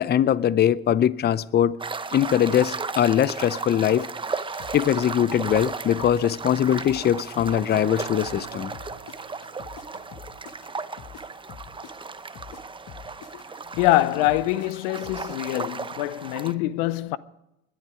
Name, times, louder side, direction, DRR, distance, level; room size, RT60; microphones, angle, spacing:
voice 1, 0.0-1.8 2.1-4.1 4.7-8.7, left 10 dB, 35° left, 0.6 m, -21 dB
sound 1, 1.8-16.5, right 4 dB, 15° right, 0.8 m, -35 dB
sound 2, 4.6-7.1 7.3-11.2 11.5-15.6, left 8 dB, 60° left, 1.2 m, -44 dB
sound 3, 7.8-11.7, right 9 dB, 60° right, 1.7 m, -45 dB
voice 2, 13.8-17.2, left 16 dB, 85° left, 0.7 m, -24 dB
21.0 x 11.5 x 4.9 m
supercardioid pair, 85°, 29 cm